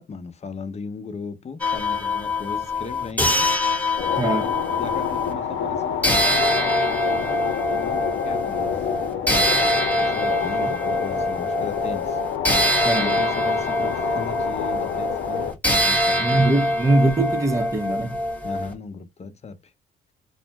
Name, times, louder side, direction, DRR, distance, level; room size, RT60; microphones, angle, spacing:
voice 1, 0.0-3.5 4.8-7.4 7.7-8.9 9.9-12.2 13.0-15.5 15.8-16.4 18.4-19.7, left 4 dB, 35° left, 0.7 m, -37 dB
belltype snd of brass bowl, 1.6-5.3 6.0-18.7, left 1 dB, 10° left, 1.1 m, -24 dB
sound 1, 4.0-15.5, left 8 dB, 80° left, 0.7 m, -28 dB
voice 2, 4.2-4.5 12.8-13.2 16.2-18.2, right 2 dB, 15° right, 0.7 m, -21 dB
2.5 x 2.1 x 3.2 m
cardioid pair, 90°, 20 cm